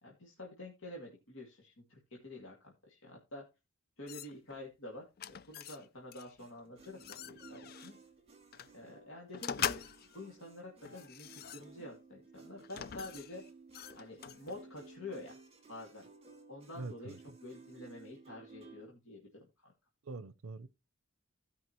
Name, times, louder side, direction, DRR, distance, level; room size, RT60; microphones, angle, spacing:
voice 1, 0.0-3.4 4.0-8.0 8.7-9.8 10.1-13.4 14.0-15.4 15.7-16.1 16.5-17.1 17.4-19.3 19.6-19.7, left 2 dB, 75° left, 2.2 m, -48 dB
sound 1, 4.1-4.6 5.2-5.8 6.1-6.3 6.8-7.9 8.5-8.7 9.3-10.2 10.8-12.0 12.6-14.7, left 9 dB, 45° left, 0.4 m, -42 dB
sound 2, 6.4-18.9, right 4 dB, 30° right, 2.4 m, -57 dB
voice 2, 16.7-17.2 20.0-20.7, right 3 dB, 80° right, 0.6 m, -44 dB
16.5 x 5.6 x 3.0 m
head